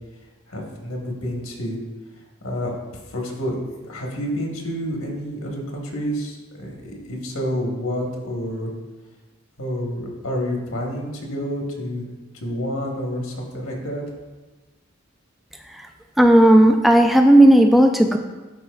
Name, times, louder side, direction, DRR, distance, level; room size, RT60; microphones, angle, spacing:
voice 1, 0.5-1.8 2.4-2.7 3.1-3.6 3.8-8.7 9.6-12.1 12.3-14.0, equal, 85° left, 0 dB, 1.3 m, -29 dB
voice 2, 16.2-18.2, right 1 dB, ahead, 4 dB, 0.3 m, -13 dB
11.5 x 4.2 x 2.3 m, 1.2 s
head